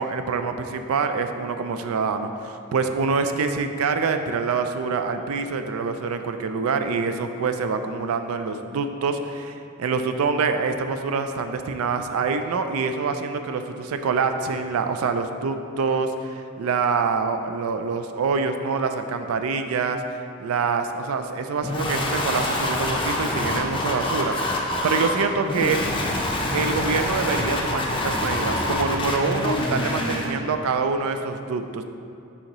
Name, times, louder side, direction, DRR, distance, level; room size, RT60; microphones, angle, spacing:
voice 1, 0.0-25.8 26.5-31.8, right 4 dB, 85° right, 8 dB, 0.4 m, -26 dB
sound 1, 21.6-30.3, left 1 dB, 25° left, 0.6 m, -26 dB
6.4 x 5.6 x 3.0 m, 2.6 s
head